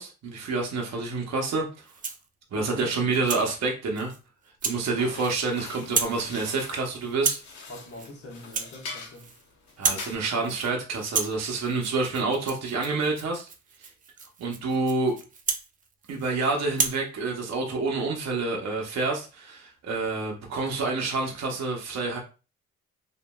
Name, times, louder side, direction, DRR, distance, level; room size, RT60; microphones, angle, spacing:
voice 1, 0.0-1.7 2.5-4.1 4.6-7.4 9.8-13.5 13.8-13.9 14.4-15.1 16.1-22.2, right 3 dB, 60° right, 0.8 m, -28 dB
Rattle (instrument), 1.8-2.3 2.8-3.5 4.0-4.2 4.6-4.8 5.1-5.5 5.8-6.2 6.5-6.8 7.2-7.5 7.9-8.1 8.4-9.4 9.7-10.1 10.4-10.7 11.0-16.3 16.7-17.0, right 5 dB, 30° right, 0.4 m, -32 dB
voice 2, 2.5-3.0 7.7-9.3, left 1 dB, 50° left, 1.1 m, -43 dB
sound 1, 5.0-10.2, left 4 dB, 65° left, 0.8 m, -43 dB
2.9 x 2.4 x 2.2 m
cardioid pair, 90°, 30 cm